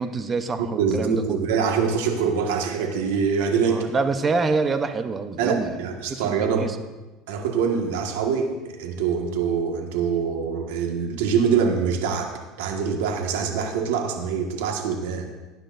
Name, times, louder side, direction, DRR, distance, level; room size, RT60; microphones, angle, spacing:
voice 1, 0.0-1.4 3.7-5.7 6.1-6.8, right 4 dB, 25° right, 9 dB, 0.8 m, -26 dB
voice 2, 0.6-3.9 5.4-6.7 7.3-8.5 8.8-12.3 12.6-15.3, right 6 dB, 90° right, 2 dB, 1.7 m, -24 dB
19.0 x 10.0 x 2.6 m, 1.1 s
supercardioid pair, 125°, 0 cm